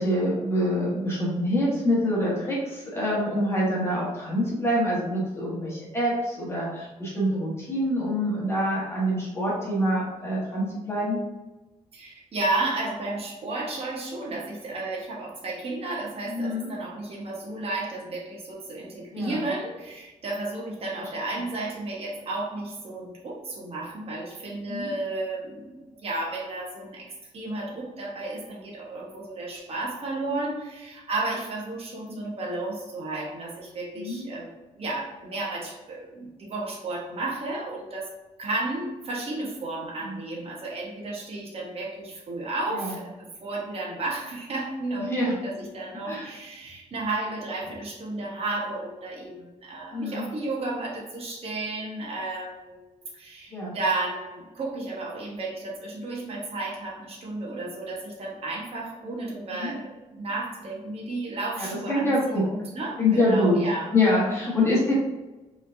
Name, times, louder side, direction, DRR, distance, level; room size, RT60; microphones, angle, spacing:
voice 1, 0.0-11.2 16.2-16.7 19.1-19.4 24.7-24.9 33.9-34.2 40.0-40.2 42.7-42.9 45.0-45.3 46.0-46.3 49.9-50.3 53.5-53.7 59.5-59.7 61.6-62.4 63.0-63.6 63.9-65.0, left 1 dB, 20° left, -6 dB, 1.3 m, -25 dB
voice 2, 11.9-38.1 38.4-63.9 64.2-64.7, right 2 dB, 50° right, -3 dB, 1.1 m, -33 dB
5.0 x 3.3 x 2.6 m, 1.1 s
cardioid pair, 140°, 13 cm